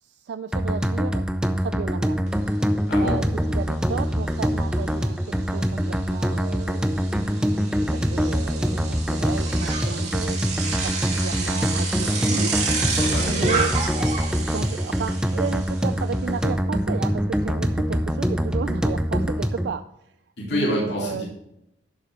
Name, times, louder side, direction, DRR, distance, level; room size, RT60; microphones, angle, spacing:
voice 1, 0.0-1.3 1.6-2.2 3.0-3.2 3.5-7.2 7.9-10.4 10.8-12.8 13.3-13.7 14.4-19.8 20.5-21.2, right 5 dB, 60° right, 10 dB, 0.3 m, -33 dB
sound 1, 0.5-19.7, equal, 5° right, 0.5 m, -24 dB
Bicycle, 2.3-2.4 2.7-16.5, right 4 dB, 35° right, 2.3 m, -31 dB
voice 2, 12.9-13.4 13.7-13.8 20.4-21.2, left 1 dB, 65° left, -3 dB, 2.5 m, -27 dB
11.0 x 7.1 x 3.1 m, 0.83 s
head